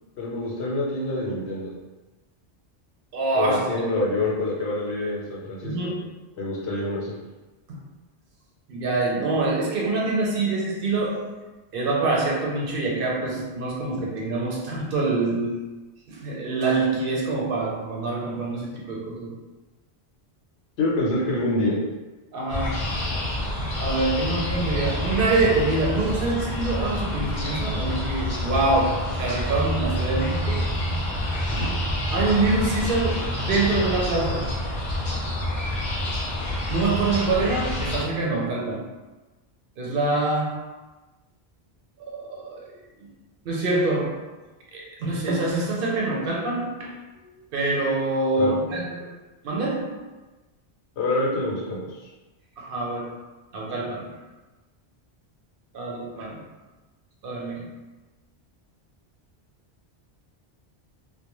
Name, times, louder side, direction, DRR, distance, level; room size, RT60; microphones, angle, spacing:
voice 1, 0.2-1.7 3.3-5.9 6.3-7.2 20.8-21.8 31.5-31.7 48.4-48.5 51.0-51.8, left 2 dB, 90° left, -4 dB, 1.0 m, -26 dB
voice 2, 3.1-3.7 5.6-6.0 7.7-7.8 8.7-11.3 11.7-15.6 16.1-19.4 22.3-22.9 23.8-30.7 32.1-34.5 36.7-38.9 39.8-40.7 42.0-42.7 43.0-43.1 43.5-44.3 44.7-49.1 49.4-50.0 52.6-53.1 53.5-54.1 55.7-56.4 57.2-57.7, right 2 dB, 65° right, -3 dB, 0.7 m, -25 dB
sound 1, 22.5-38.0, left 1 dB, 50° left, 0.7 m, -28 dB
2.3 x 2.1 x 2.9 m, 1.1 s
omnidirectional pair, 1.1 m